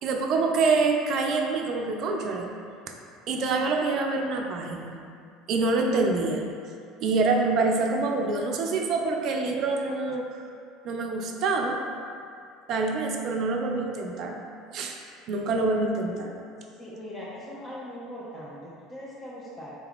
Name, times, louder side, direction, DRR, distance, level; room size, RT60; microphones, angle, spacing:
voice 1, 0.0-2.5 3.3-5.0 5.5-6.4 7.0-10.4 10.8-11.8 12.7-14.4 14.7-15.0 15.3-16.3, right 3 dB, 50° right, 2 dB, 0.4 m, -26 dB
voice 2, 16.8-19.7, equal, 25° left, -7 dB, 0.5 m, -40 dB
3.7 x 2.3 x 3.4 m, 2.3 s
figure-of-eight pair, 65°, 0 cm